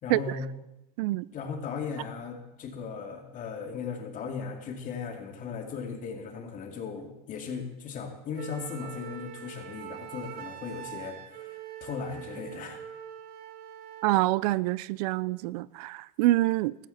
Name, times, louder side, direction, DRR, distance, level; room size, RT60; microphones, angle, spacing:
voice 1, 0.0-0.5 1.3-12.8, left 5 dB, 40° left, 2.5 m, -37 dB
Wind instrument woodwind instrument, 8.4-14.2, right 11 dB, 50° right, 1.2 m, -43 dB
voice 2, 14.0-16.7, right 17 dB, 80° right, 0.4 m, -26 dB
15.0 x 13.5 x 4.2 m
supercardioid pair, 115°, 20 cm